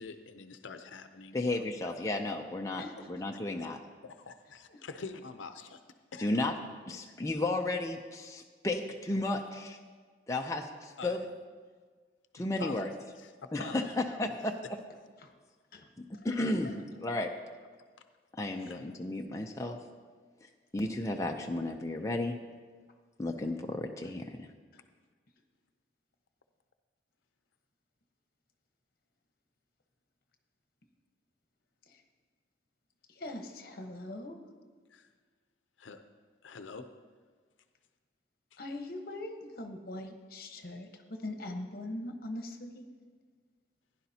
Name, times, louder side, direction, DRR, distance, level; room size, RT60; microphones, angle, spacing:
voice 1, 0.0-1.6 2.0-2.1 3.6-3.7 4.0-5.8 6.1-6.4 7.0-7.2 10.3-10.5 11.0-11.2 12.4-12.9 13.2-14.4 18.7-18.8 34.9-35.1 35.8-36.0 36.4-36.9, left 4 dB, 90° left, 8 dB, 0.6 m, -46 dB
voice 2, 1.3-2.8 3.1-3.8 6.2-6.5 6.9-9.8 10.3-11.2 12.3-12.9 13.5-14.5 16.2-17.3 18.3-19.8 20.7-22.4 23.2-24.5, left 2 dB, 15° left, 2 dB, 0.5 m, -33 dB
voice 3, 33.1-34.4 38.6-42.9, left 1 dB, 50° left, 4 dB, 1.0 m, -42 dB
15.5 x 10.5 x 2.8 m, 1.5 s
head